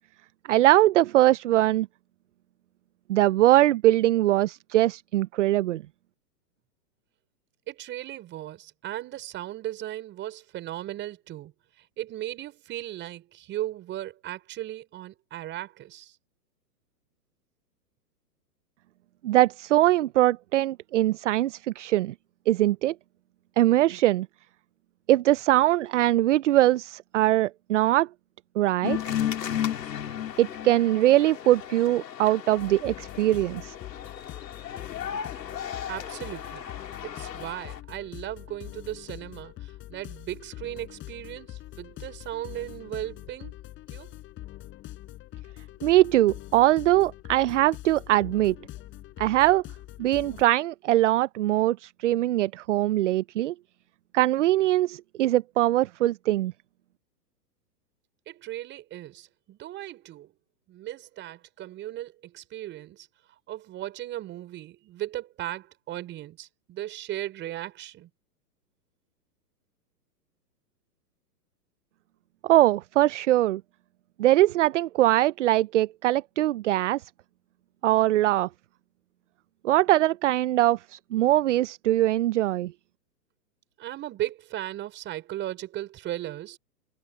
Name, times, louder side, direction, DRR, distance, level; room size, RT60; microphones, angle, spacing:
voice 1, 0.5-1.9 3.1-5.8 19.2-22.1 22.5-22.9 23.6-24.3 25.1-28.1 28.6-29.0 30.4-33.7 45.8-48.6 49.2-49.6 50.0-53.5 54.1-56.5 72.4-73.6 74.2-77.0 77.8-78.5 79.6-82.7, right 15 dB, 45° right, 0.7 m, -22 dB
voice 2, 7.7-11.5 12.0-16.1 35.9-36.6 37.0-43.6 43.9-44.1 58.3-60.3 60.7-63.1 63.5-68.1 83.8-86.6, right 14 dB, 20° right, 5.8 m, -37 dB
sound 1, 28.8-37.8, left 10 dB, 80° left, 3.4 m, -34 dB
sound 2, 32.6-50.4, left 15 dB, 25° left, 5.2 m, -43 dB
hypercardioid pair, 145°, 49 cm